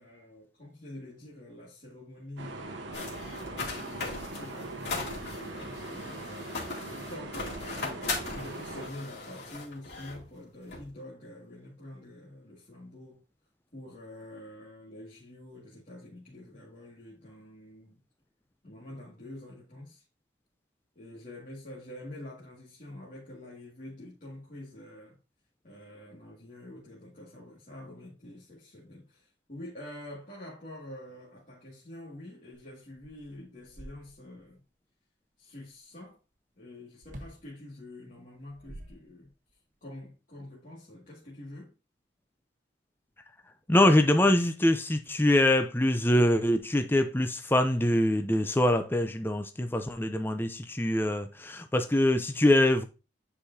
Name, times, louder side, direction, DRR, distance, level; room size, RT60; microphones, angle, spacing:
voice 1, 0.0-2.7 3.4-13.2 13.7-18.0 18.6-20.1 21.0-25.2 25.6-34.6 35.4-36.2 36.6-39.3 39.8-41.7, left 1 dB, 40° left, 2.1 m, -46 dB
sound 1, 2.4-8.9, right 2 dB, 70° right, 1.1 m, -41 dB
sound 2, 2.9-10.3 10.7-10.9, left 3 dB, 60° left, 2.5 m, -38 dB
sound 3, 32.5-32.6 33.0-34.5 37.0-37.5 38.3-39.5, right 1 dB, 40° right, 1.1 m, -47 dB
voice 2, 43.7-52.9, left 1 dB, 10° left, 0.5 m, -24 dB
10.0 x 4.8 x 2.7 m
head